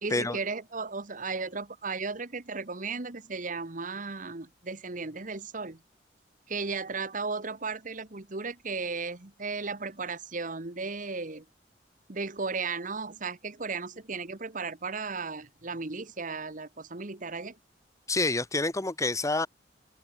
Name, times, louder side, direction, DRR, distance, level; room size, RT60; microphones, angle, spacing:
voice 1, 0.0-5.8 6.5-11.4 12.1-17.6, right 4 dB, 45° right, 1.6 m, -35 dB
voice 2, 18.1-19.5, left 2 dB, 20° left, 1.1 m, -27 dB
open air
head